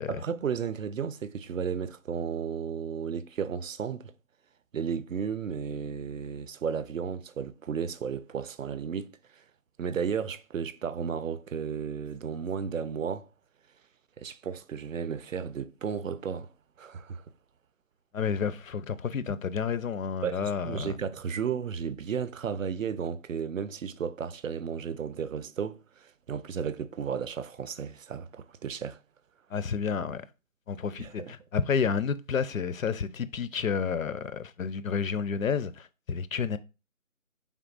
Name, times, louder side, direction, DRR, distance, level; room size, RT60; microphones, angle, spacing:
voice 1, 0.1-4.1 4.7-9.1 9.8-13.3 14.2-16.5 16.8-17.2 20.2-29.0 31.0-31.3, right 7 dB, 70° right, 0.5 m, -33 dB
voice 2, 18.1-21.0 29.5-30.2 30.7-36.6, left 6 dB, 75° left, 0.5 m, -30 dB
4.3 x 3.6 x 2.4 m
figure-of-eight pair, 160°, 41 cm